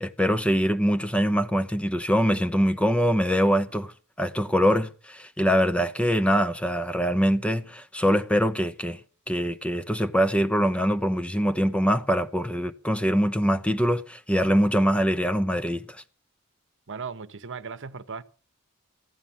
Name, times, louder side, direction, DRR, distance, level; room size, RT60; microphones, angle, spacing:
voice 1, 0.0-3.9 4.2-9.0 9.3-15.8, equal, 5° left, 0.8 m, -23 dB
voice 2, 16.9-18.2, right 5 dB, 55° right, 1.0 m, -37 dB
15.5 x 11.0 x 7.3 m
head